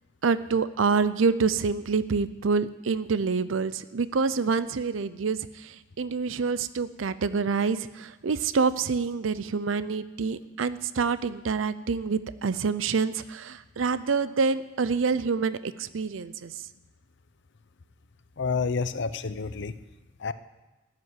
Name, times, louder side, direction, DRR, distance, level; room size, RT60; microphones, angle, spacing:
voice 1, 0.2-16.5, right 5 dB, 90° right, 15 dB, 0.6 m, -27 dB
voice 2, 18.4-19.7 20.2-20.3, left 5 dB, 65° left, 13 dB, 0.7 m, -29 dB
14.0 x 8.3 x 9.8 m, 1.1 s
head